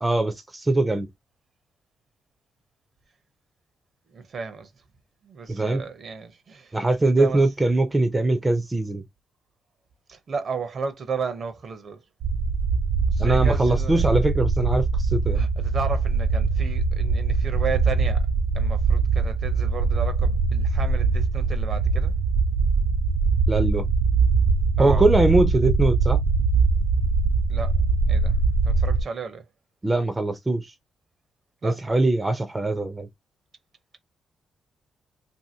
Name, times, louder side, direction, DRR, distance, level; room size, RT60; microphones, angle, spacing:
voice 1, 0.0-1.1 5.5-5.8 6.7-9.0 13.2-15.4 23.5-23.8 24.8-26.2 29.8-30.7 31.6-33.1, right 2 dB, 20° right, 0.5 m, -22 dB
voice 2, 4.1-4.7 5.2-7.4 10.1-12.0 13.1-14.1 15.3-18.3 18.5-22.1 24.8-25.1 27.5-27.8 28.1-28.4 28.6-29.5 31.6-31.8, right 5 dB, 55° right, 0.7 m, -33 dB
sound 1, 12.2-29.0, right 4 dB, 85° right, 0.3 m, -22 dB
2.7 x 2.7 x 2.7 m
cardioid pair, 80°, 0 cm